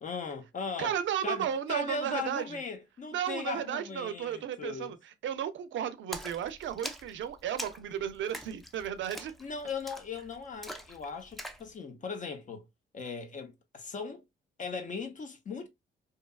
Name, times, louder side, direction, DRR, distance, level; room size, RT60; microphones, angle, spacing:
voice 1, 0.0-1.0 1.2-5.0 9.4-12.7 12.9-14.2 14.6-15.7, left 4 dB, 40° left, 0.6 m, -38 dB
voice 2, 0.8-2.6 3.1-5.0 5.2-9.3, right 9 dB, 70° right, 0.4 m, -34 dB
Splash splatter, 6.1-11.7, equal, ahead, 0.3 m, -44 dB
2.8 x 2.3 x 2.2 m
cardioid pair, 110°, 20 cm